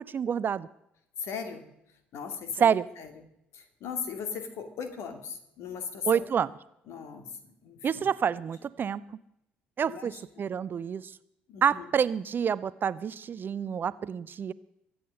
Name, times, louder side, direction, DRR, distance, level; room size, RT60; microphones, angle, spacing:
voice 1, 0.1-0.7 2.6-2.9 6.1-6.5 7.8-9.0 9.8-11.1 11.6-14.5, right 7 dB, 40° right, 19 dB, 0.6 m, -28 dB
voice 2, 1.2-1.6 2.1-3.1 3.5-6.2 6.9-7.3 7.6-8.0 9.8-10.1 11.5-11.9, left 6 dB, 55° left, 7 dB, 2.5 m, -38 dB
23.0 x 8.8 x 6.5 m, 0.79 s
figure-of-eight pair, 50°, 6 cm